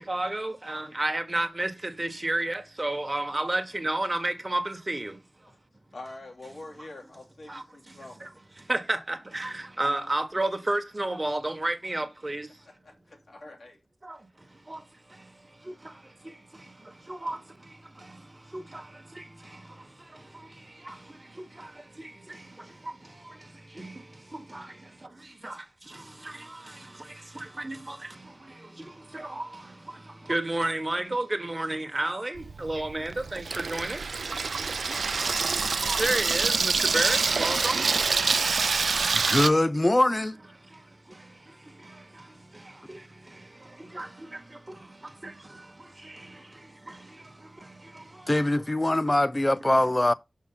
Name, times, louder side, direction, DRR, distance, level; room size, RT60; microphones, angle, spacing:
voice 1, 0.1-1.7 2.0-5.1 8.7-9.5 9.8-12.4 17.2-17.4 25.4-25.5 27.6-28.0 29.1-29.4 30.3-33.4 33.7-34.0 35.9-37.8 44.0-44.1, right 2 dB, 30° right, 1.3 m, -29 dB
voice 2, 5.9-8.2 12.6-13.8 24.8-25.0, left 2 dB, 80° left, 3.2 m, -45 dB
Water tap faucet / Sink (filling or washing), 32.4-39.5, right 4 dB, 90° right, 0.4 m, -26 dB
voice 3, 39.1-40.3 48.3-50.1, left 1 dB, 25° left, 0.4 m, -23 dB
6.2 x 5.5 x 3.8 m
wide cardioid pair, 65°, 0 cm